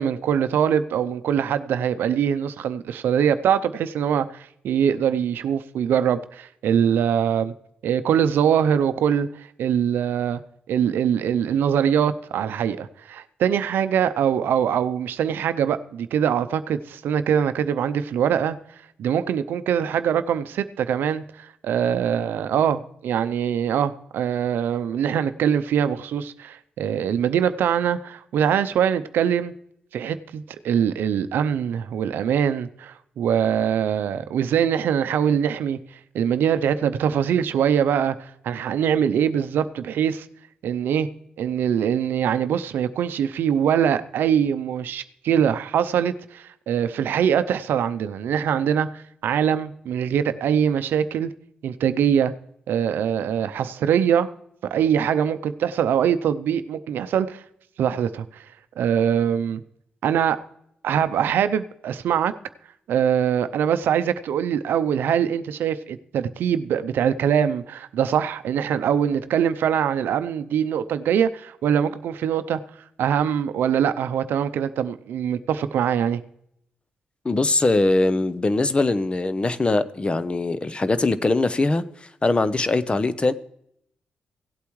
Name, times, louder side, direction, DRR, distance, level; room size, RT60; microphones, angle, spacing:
voice 1, 0.0-7.5 7.8-10.4 10.7-18.6 19.0-29.5 29.9-35.8 36.1-40.3 40.6-41.1 41.4-51.3 51.6-52.3 52.7-54.3 54.7-57.4 57.8-58.4 58.8-59.6 60.0-60.4 60.8-62.3 62.9-72.6 73.0-76.2, right 8 dB, 80° right, 0.5 m, -23 dB
voice 2, 77.2-83.3, left 2 dB, 30° left, 0.8 m, -22 dB
17.0 x 8.3 x 3.1 m
cardioid pair, 60°, 3 cm